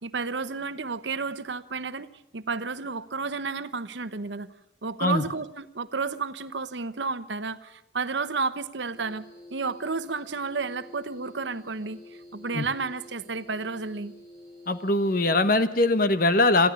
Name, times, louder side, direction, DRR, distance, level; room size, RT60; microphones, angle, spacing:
voice 1, 0.0-2.1 2.3-4.5 4.8-9.2 9.5-12.0 12.3-14.1, right 4 dB, 75° right, 13 dB, 1.0 m, -31 dB
sound 1, 8.9-15.2, left 1 dB, 20° left, 5.3 m, -49 dB
voice 2, 14.7-16.7, left 2 dB, 50° left, 11 dB, 1.2 m, -22 dB
22.5 x 14.5 x 8.4 m, 0.81 s
head